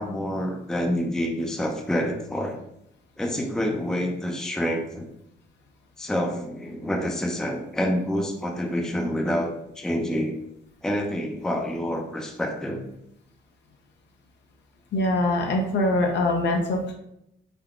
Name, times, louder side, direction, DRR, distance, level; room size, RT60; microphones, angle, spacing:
voice 1, 0.0-2.6 3.2-5.1 6.0-10.4 10.8-12.8, equal, 5° left, 2 dB, 0.4 m, -27 dB
voice 2, 14.9-16.9, left 1 dB, 60° left, 2 dB, 0.5 m, -23 dB
3.5 x 2.2 x 2.4 m, 0.79 s
cardioid pair, 90°, 20 cm